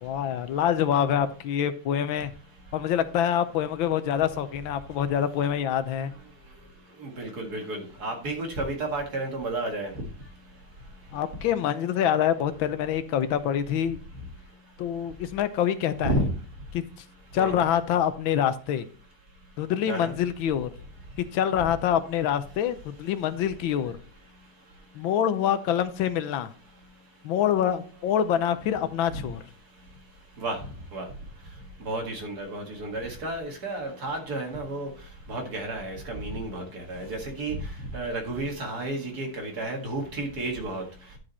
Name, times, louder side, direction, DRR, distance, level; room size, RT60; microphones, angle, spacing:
voice 1, 0.0-2.3 2.7-6.1 11.1-14.0 14.8-16.1 16.7-16.8 17.3-18.9 19.6-20.7 21.3-24.0 24.9-26.5 27.2-29.4, left 9 dB, 80° left, 12 dB, 1.5 m, -26 dB
voice 2, 7.0-9.9 16.0-16.3 17.4-17.6 19.9-20.1 30.4-30.6 30.9-31.0 31.9-34.9 35.3-37.6 37.9-40.8, right 2 dB, 50° right, 2 dB, 2.3 m, -31 dB
11.0 x 5.2 x 4.2 m, 0.38 s
omnidirectional pair, 2.1 m